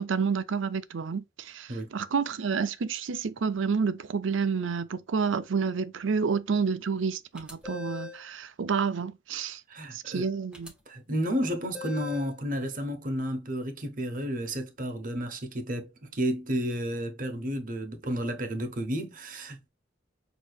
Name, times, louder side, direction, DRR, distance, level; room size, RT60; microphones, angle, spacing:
voice 1, 0.0-9.6 9.9-10.7, right 5 dB, 85° right, 0.5 m, -29 dB
sound 1, 7.4-8.2 10.5-10.7 11.7-12.4, left 5 dB, 5° right, 1.0 m, -40 dB
voice 2, 9.7-10.3 10.9-19.7, equal, 45° right, 1.0 m, -32 dB
6.3 x 2.9 x 2.4 m
head